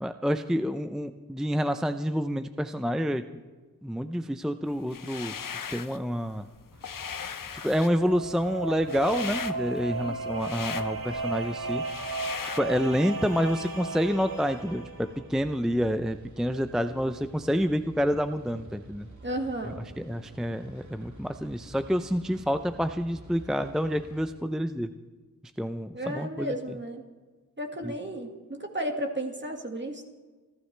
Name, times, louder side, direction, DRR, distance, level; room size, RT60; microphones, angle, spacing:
voice 1, 0.0-3.3 3.8-5.3 5.7-6.5 7.5-11.8 12.6-19.1 19.7-24.9 25.6-26.5 27.8-27.9, equal, ahead, 9 dB, 0.5 m, -28 dB
sound 1, 4.8-6.0 6.4-12.6, left 7 dB, 65° left, 0.8 m, -38 dB
sound 2, 6.7-24.3, right 1 dB, 55° right, 2.5 m, -50 dB
sound 3, 7.6-15.3, right 3 dB, 70° right, 2.3 m, -35 dB
voice 2, 19.2-19.8 25.9-27.0 27.6-30.1, right 1 dB, 30° right, 2 dB, 1.9 m, -33 dB
29.0 x 12.5 x 3.3 m, 1.3 s
wide cardioid pair, 80°, 35 cm